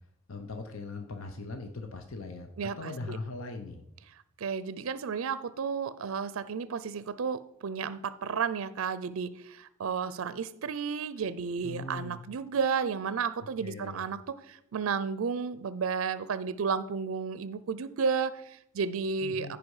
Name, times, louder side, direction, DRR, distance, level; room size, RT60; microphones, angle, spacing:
voice 1, 0.3-3.8 11.6-12.2 13.6-14.0 19.2-19.6, left 3 dB, 80° left, 6 dB, 0.8 m, -40 dB
voice 2, 2.6-3.2 4.4-19.6, right 6 dB, 80° right, 15 dB, 0.4 m, -32 dB
15.0 x 4.9 x 4.8 m, 0.78 s
head